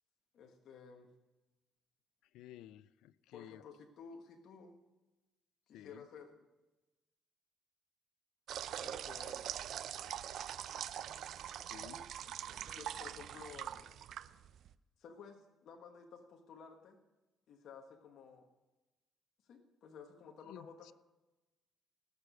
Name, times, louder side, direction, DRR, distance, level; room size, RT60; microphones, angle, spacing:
voice 1, 0.3-1.1 3.3-4.8 5.7-6.4 8.8-9.5 11.6-12.3 12.6-13.9 15.0-17.0 17.5-18.5 19.5-20.9, left 5 dB, 65° left, 2 dB, 1.4 m, -54 dB
voice 2, 2.3-3.6 5.7-6.0 11.7-12.0 20.5-20.9, left 13 dB, 90° left, 18 dB, 0.4 m, -54 dB
sound 1, 8.5-14.7, right 10 dB, 65° right, 0.5 m, -43 dB
18.0 x 6.7 x 6.3 m, 1.1 s
cardioid pair, 110°, 0 cm